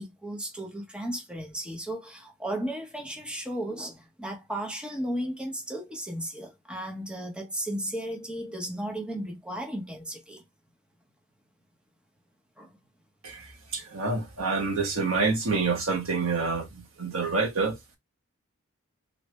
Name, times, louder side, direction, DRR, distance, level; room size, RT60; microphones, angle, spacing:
voice 1, 0.0-10.4 12.6-12.7, right 1 dB, 5° right, 0.8 m, -35 dB
voice 2, 13.7-17.8, right 4 dB, 80° right, 1.2 m, -27 dB
3.2 x 2.6 x 3.1 m
head